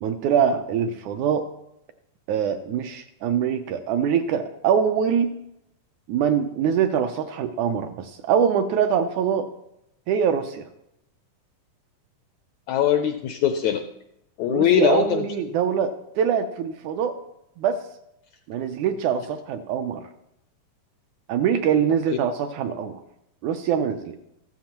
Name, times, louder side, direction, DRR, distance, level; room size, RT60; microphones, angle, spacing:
voice 1, 0.0-1.5 2.3-5.3 6.1-9.5 10.1-10.6 14.5-17.2 17.6-17.8 18.5-20.1 21.3-23.0 23.4-24.2, right 8 dB, 80° right, 7 dB, 1.8 m, -23 dB
voice 2, 12.7-13.8 14.4-15.3, left 9 dB, 80° left, 7 dB, 1.6 m, -21 dB
14.0 x 13.0 x 3.0 m, 0.81 s
omnidirectional pair, 3.8 m